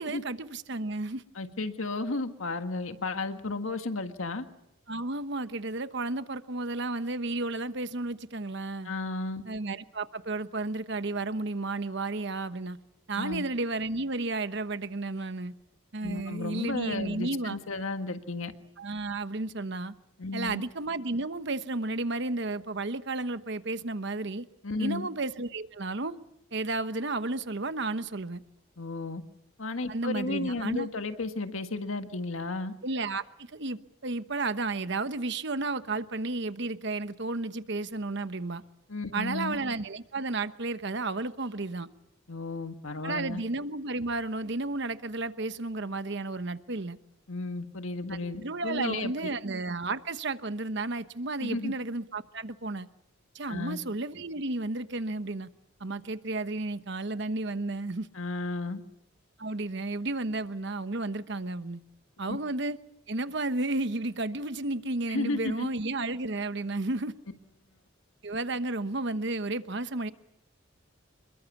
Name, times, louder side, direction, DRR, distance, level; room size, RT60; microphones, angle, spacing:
voice 1, 0.0-1.2 4.9-8.9 9.5-12.8 13.1-15.5 15.9-17.6 18.8-19.9 20.3-24.4 24.8-26.2 26.5-28.4 29.9-30.9 32.8-38.6 39.1-41.9 43.0-47.0 48.4-52.9 53.3-55.5 55.8-58.1 59.4-61.8 62.2-62.8 63.1-67.1 68.2-70.1, right 2 dB, 60° right, 1.1 m, -32 dB
voice 2, 1.3-4.4 8.8-9.4 13.2-13.4 16.0-18.5 20.2-20.6 24.6-25.1 28.8-29.2 29.6-32.7 38.9-39.6 42.3-43.4 47.3-49.1 51.4-51.7 53.5-53.8 58.1-58.8 62.2-62.4 65.1-65.7, left 3 dB, 85° left, 1.7 m, -33 dB
27.5 x 22.5 x 7.2 m
head